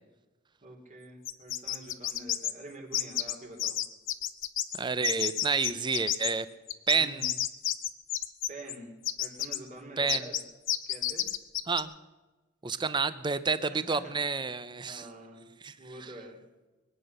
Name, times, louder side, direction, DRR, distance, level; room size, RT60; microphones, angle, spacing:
voice 1, 0.6-3.8 6.9-7.2 8.5-10.4 10.9-11.3 13.7-14.1 14.8-15.5 15.8-16.4, right 1 dB, 40° right, 1 dB, 3.1 m, -46 dB
sound 1, 1.3-2.5 2.9-3.3 3.6-4.8 5.0-6.3 6.7-8.8 9.0-9.6 10.1-10.4 10.7-11.8, left 12 dB, 85° left, 0.8 m, -30 dB
voice 2, 4.7-6.5 6.9-7.3 10.0-10.2 11.7-11.9 12.6-15.1 15.6-15.7 16.0-16.1, right 4 dB, 25° right, 14 dB, 0.6 m, -29 dB
23.0 x 8.9 x 6.7 m, 1.2 s
head